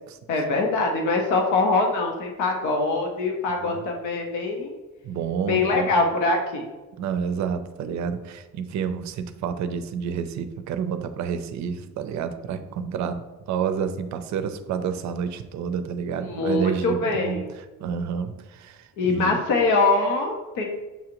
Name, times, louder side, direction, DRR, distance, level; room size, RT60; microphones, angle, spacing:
voice 1, 0.3-4.7 5.4-6.7 16.2-17.5 19.0-20.7, left 3 dB, 80° left, 2 dB, 0.8 m, -23 dB
voice 2, 5.0-5.9 7.0-17.5 17.8-19.4, right 7 dB, 70° right, 9 dB, 0.5 m, -29 dB
6.9 x 2.5 x 2.9 m, 1.2 s
cardioid pair, 90°, 30 cm